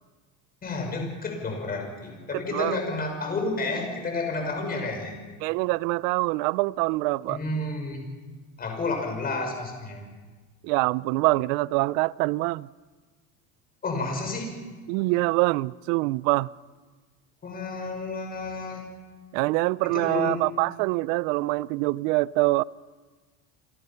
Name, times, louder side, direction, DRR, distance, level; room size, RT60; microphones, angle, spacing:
voice 1, 0.6-5.1 7.3-8.1 8.6-10.0 13.8-14.6 17.4-18.8 19.9-20.4, left 3 dB, 20° left, 5.8 m, -31 dB
voice 2, 2.3-2.8 5.4-7.4 10.6-12.7 14.9-16.5 19.3-22.6, right 21 dB, 75° right, 0.6 m, -25 dB
29.5 x 22.5 x 5.8 m
cardioid pair, 160°, 40 cm